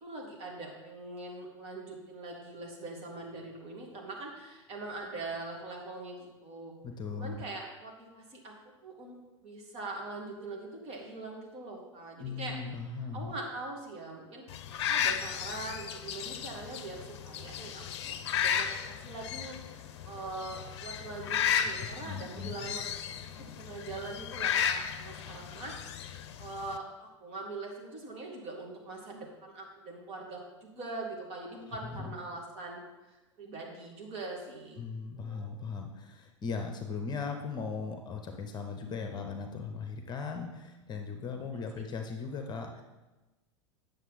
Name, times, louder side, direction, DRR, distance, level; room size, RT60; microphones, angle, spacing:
voice 1, 0.0-6.7 7.1-8.5 8.8-9.2 9.4-12.5 13.1-14.4 14.9-34.8 35.2-35.5 41.5-41.8, right 2 dB, 40° right, 0 dB, 2.3 m, -42 dB
voice 2, 6.8-7.4 12.2-13.3 21.8-22.5 31.8-32.2 34.8-42.8, left 5 dB, 25° left, 5 dB, 1.0 m, -38 dB
sound 1, 14.5-26.8, left 8 dB, 60° left, 0.6 m, -34 dB
9.2 x 6.7 x 4.1 m, 1.1 s
figure-of-eight pair, 85°, 16 cm